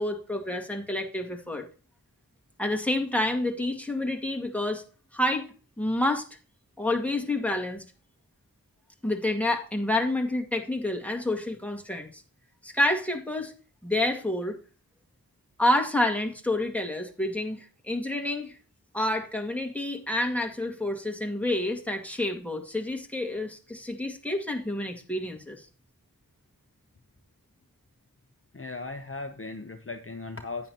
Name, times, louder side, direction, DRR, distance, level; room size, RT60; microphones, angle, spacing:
voice 1, 0.0-1.7 2.6-4.8 5.1-5.5 5.8-6.2 6.8-7.8 9.0-12.2 12.6-13.5 13.8-14.6 15.6-18.6 18.9-25.7, left 1 dB, 5° left, 2 dB, 1.9 m, -28 dB
voice 2, 28.5-30.7, left 3 dB, 35° left, 7 dB, 0.8 m, -37 dB
9.6 x 9.4 x 2.9 m, 0.36 s
wide cardioid pair, 45°, 36 cm